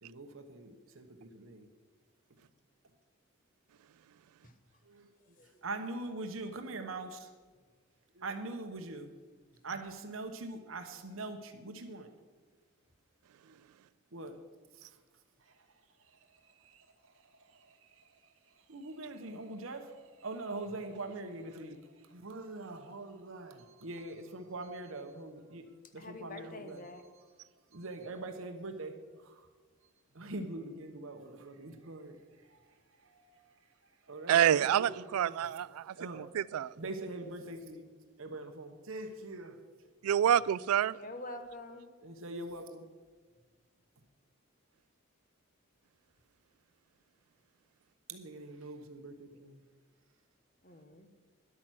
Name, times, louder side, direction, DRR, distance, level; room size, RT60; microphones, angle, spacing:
voice 1, 0.0-1.7 4.8-5.1 5.4-7.3 8.1-9.1 9.6-12.1 13.4-13.6 14.1-14.4 14.7-15.0 15.4-25.6 25.9-27.3 27.7-29.5 30.1-33.4 33.8-35.5 36.0-36.3 36.8-37.9 38.2-39.6 42.0-42.9 48.1-49.6, right 2 dB, 70° right, 0.9 m, -44 dB
voice 2, 26.0-27.0 40.9-41.8 50.6-51.1, left 2 dB, 40° left, 1.1 m, -45 dB
voice 3, 34.3-36.8 40.0-41.0, right 10 dB, 90° right, 0.3 m, -28 dB
11.0 x 8.6 x 6.2 m
head